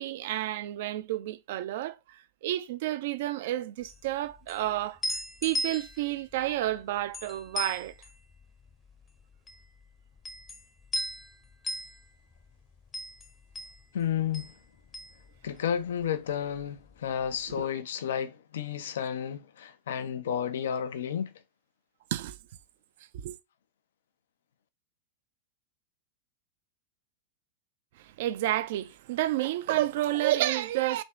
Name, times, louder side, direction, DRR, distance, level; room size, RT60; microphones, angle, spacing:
voice 1, 0.0-5.0 5.4-7.9 17.6-17.7 22.1-22.4 23.1-23.4 28.0-31.0, right 14 dB, 55° right, 0.4 m, -30 dB
sound 1, 3.8-16.1 16.3-17.4, left 1 dB, 20° left, 0.8 m, -38 dB
voice 2, 13.9-14.5 15.4-21.3, left 8 dB, 60° left, 0.5 m, -32 dB
5.2 x 2.8 x 3.4 m
figure-of-eight pair, 90°, 0 cm